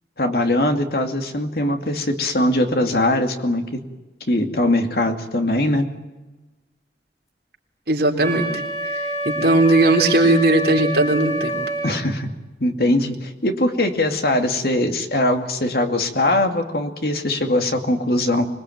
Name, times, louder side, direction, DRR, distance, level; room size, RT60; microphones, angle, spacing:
voice 1, 0.2-3.8 4.3-5.9 11.8-12.3 12.6-18.5, left 1 dB, 60° left, 5 dB, 2.5 m, -21 dB
voice 2, 7.9-8.5 9.3-11.5, right 2 dB, 65° right, 1 dB, 3.9 m, -17 dB
Wind instrument woodwind instrument, 8.2-12.0, right 1 dB, 20° left, 3.6 m, -27 dB
25.5 x 20.5 x 9.3 m, 1.1 s
head